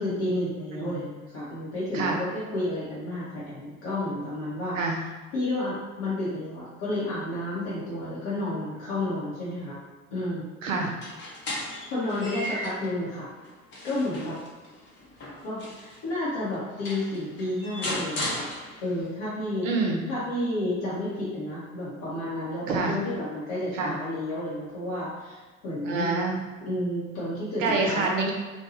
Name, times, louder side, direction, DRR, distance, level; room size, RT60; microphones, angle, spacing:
voice 1, 0.0-4.8 5.3-9.8 10.1-10.5 11.9-13.3 13.8-14.4 15.4-18.5 18.8-19.7 20.1-26.1 26.6-28.1, left 1 dB, 55° left, -9 dB, 0.9 m, -31 dB
voice 2, 10.6-10.9 19.6-20.0 22.7-23.0 23.7-23.9 25.8-26.4 27.6-28.3, right 3 dB, 65° right, 0 dB, 0.7 m, -26 dB
sound 1, 10.9-12.9 13.4-16.0 16.5-16.6 16.8-19.1, left 1 dB, 30° left, 0.7 m, -36 dB
2.6 x 2.2 x 2.8 m, 1.3 s
figure-of-eight pair, 65°, 41 cm